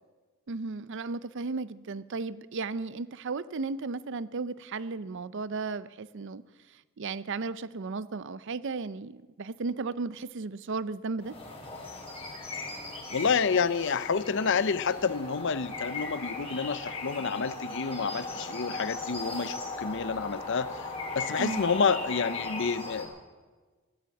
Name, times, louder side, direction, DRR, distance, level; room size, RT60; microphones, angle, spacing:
voice 1, 0.5-6.4 6.7-11.4 21.4-21.7, right 4 dB, 55° right, 17 dB, 0.5 m, -35 dB
sound 1, 11.2-23.1, left 3 dB, 25° left, 3.0 m, -38 dB
voice 2, 13.1-20.9 21.1-23.1, left 5 dB, 55° left, 15 dB, 0.6 m, -29 dB
16.0 x 12.0 x 7.1 m, 1.3 s
head